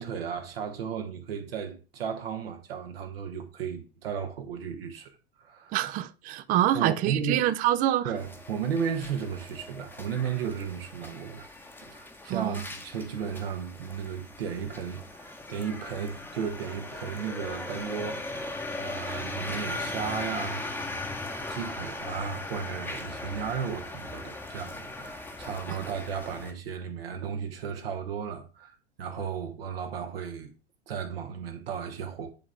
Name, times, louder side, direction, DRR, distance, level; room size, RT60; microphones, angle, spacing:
voice 1, 0.0-5.8 6.7-7.5 8.0-11.5 11.8-20.6 21.4-30.5 30.9-32.3, right 7 dB, 60° right, 1.1 m, -34 dB
voice 2, 5.7-8.1 12.3-12.6, right 13 dB, 25° right, 0.4 m, -26 dB
sound 1, 8.2-26.5, left 2 dB, 5° left, 0.9 m, -39 dB
10.0 x 3.6 x 3.4 m
figure-of-eight pair, 85°, 33 cm